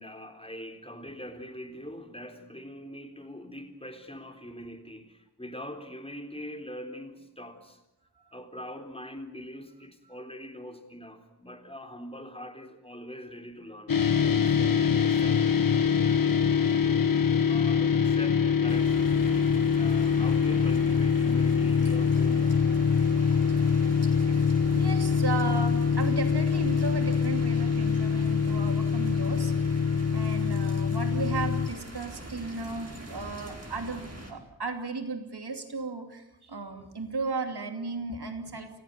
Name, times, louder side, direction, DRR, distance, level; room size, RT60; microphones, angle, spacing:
voice 1, 0.0-7.8 8.3-13.9 14.2-15.5 16.8-17.1 17.5-22.7, equal, 15° left, 5 dB, 3.8 m, -43 dB
sound 1, 13.9-31.7, left 6 dB, 60° left, 0.9 m, -24 dB
sound 2, 18.7-34.3, right 1 dB, 40° right, 4.6 m, -42 dB
voice 2, 24.8-38.8, right 3 dB, 85° right, 6 dB, 2.8 m, -35 dB
28.5 x 15.5 x 9.3 m, 0.93 s
wide cardioid pair, 45°, 38 cm